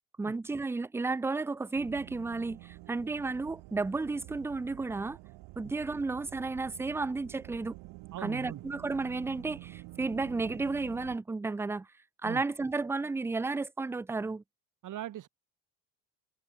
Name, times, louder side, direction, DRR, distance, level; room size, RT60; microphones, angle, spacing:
voice 1, 0.2-5.2 5.6-7.7 8.2-11.9 12.2-14.4, right 3 dB, 5° right, 0.4 m, -33 dB
sound 1, 1.7-11.2, right 21 dB, 90° right, 3.7 m, -49 dB
voice 2, 8.1-8.6 12.2-12.4 14.8-15.3, right 12 dB, 50° right, 4.0 m, -40 dB
cardioid pair, 150°, 38 cm